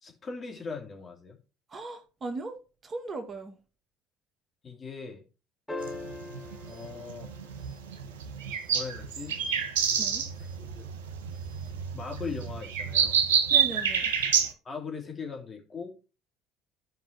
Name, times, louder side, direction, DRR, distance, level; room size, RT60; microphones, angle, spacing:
voice 1, 0.0-1.4 4.6-5.2 6.7-7.3 8.7-9.4 10.6-10.9 11.9-13.2 14.6-15.9, left 5 dB, 35° left, 3.1 m, -39 dB
voice 2, 1.7-3.6 10.0-10.3 13.5-14.1, right 3 dB, 35° right, 1.8 m, -38 dB
sound 1, 5.7-8.2 10.4-10.5, left 2 dB, 15° left, 1.9 m, -41 dB
sound 2, 5.8-14.5, right 7 dB, 80° right, 1.2 m, -28 dB
14.0 x 5.3 x 2.9 m
hypercardioid pair, 60°, 0 cm